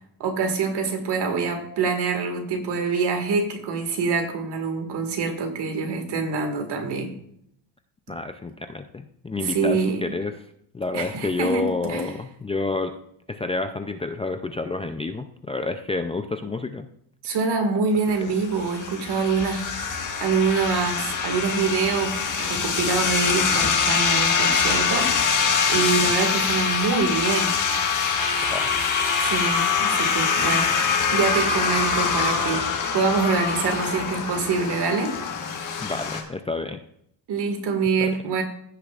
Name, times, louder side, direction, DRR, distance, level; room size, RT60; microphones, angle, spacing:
voice 1, 0.2-7.1 9.4-10.0 10.9-12.1 17.2-27.6 29.2-32.6 32.9-35.1 37.3-38.4, right 4 dB, 65° right, 4 dB, 2.0 m, -25 dB
voice 2, 8.1-10.3 10.7-12.9 13.3-16.9 18.2-18.3 25.7-26.1 28.5-28.7 30.4-30.5 35.8-36.8, left 3 dB, 15° left, 7 dB, 0.3 m, -29 dB
sound 1, 18.3-36.2, left 5 dB, 45° left, 1.5 m, -24 dB
15.5 x 6.6 x 2.4 m, 0.71 s
cardioid pair, 125°, 43 cm